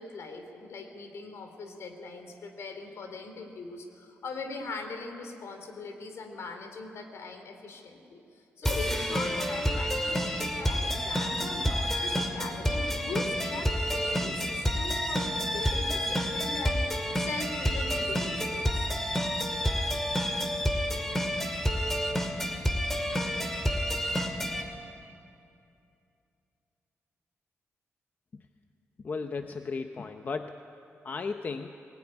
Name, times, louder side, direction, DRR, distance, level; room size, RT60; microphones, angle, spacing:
voice 1, 0.0-8.2 8.6-18.9, left 3 dB, 70° left, 6 dB, 3.1 m, -40 dB
sound 1, 8.6-24.6, equal, 5° left, 2.1 m, -29 dB
voice 2, 29.0-30.6 31.0-31.7, left 4 dB, 40° left, 7 dB, 0.8 m, -35 dB
21.5 x 20.0 x 9.9 m, 2.6 s
wide cardioid pair, 140°, 5 cm